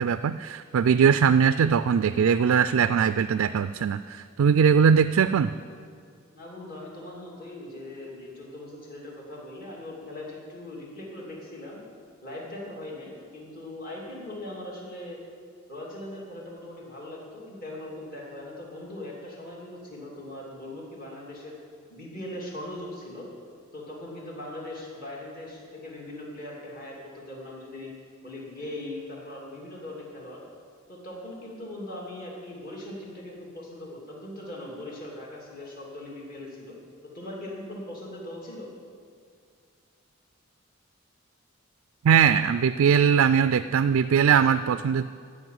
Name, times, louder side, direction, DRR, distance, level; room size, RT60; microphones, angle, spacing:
voice 1, 0.0-5.5 42.0-45.0, right 7 dB, 75° right, 11 dB, 0.3 m, -21 dB
voice 2, 6.3-11.8 12.2-15.2 15.7-21.6 21.9-23.3 23.7-27.9 28.2-30.4 30.9-36.7 37.1-38.7, left 1 dB, 45° left, -3 dB, 2.8 m, -40 dB
14.0 x 5.3 x 9.4 m, 2.2 s
head